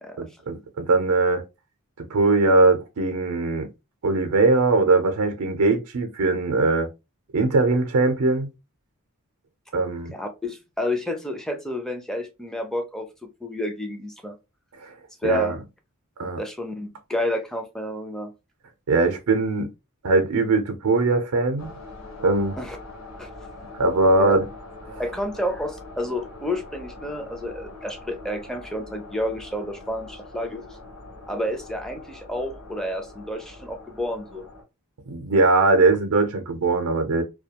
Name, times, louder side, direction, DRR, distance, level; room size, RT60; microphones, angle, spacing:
voice 1, 0.2-1.4 2.1-3.7 4.0-6.9 7.3-8.5 9.7-10.1 14.8-14.9 15.2-15.6 16.2-16.4 18.9-19.7 20.0-21.8 22.2-22.6 23.8-24.5 24.9-25.0 35.1-37.2, right 3 dB, 85° right, 0.5 m, -21 dB
voice 2, 10.1-13.1 13.4-14.4 15.2-15.6 16.4-18.3 22.6-22.8 23.2-23.3 24.2-24.3 25.0-30.6 31.3-34.4, left 1 dB, ahead, 0.4 m, -30 dB
sound 1, 21.6-34.6, left 2 dB, 80° left, 1.1 m, -43 dB
2.3 x 2.2 x 2.7 m
head